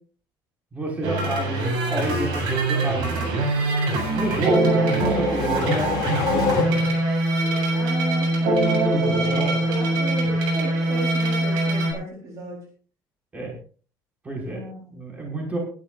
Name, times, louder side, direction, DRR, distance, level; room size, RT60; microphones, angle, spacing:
voice 1, 0.7-3.3 4.1-6.8 8.9-9.6 13.3-13.5 14.2-14.6 14.9-15.6, right 2 dB, 20° right, -1 dB, 5.6 m, -29 dB
sound 1, 1.0-11.9, right 2 dB, 80° right, 7.9 m, -23 dB
sound 2, 4.1-7.2, left 9 dB, 60° left, 3.0 m, -28 dB
voice 2, 4.1-4.6 7.7-8.7 9.2-12.6 14.5-15.0, right 2 dB, 45° right, 0 dB, 4.1 m, -35 dB
21.5 x 11.5 x 2.6 m, 0.40 s
cardioid pair, 165°, 8 cm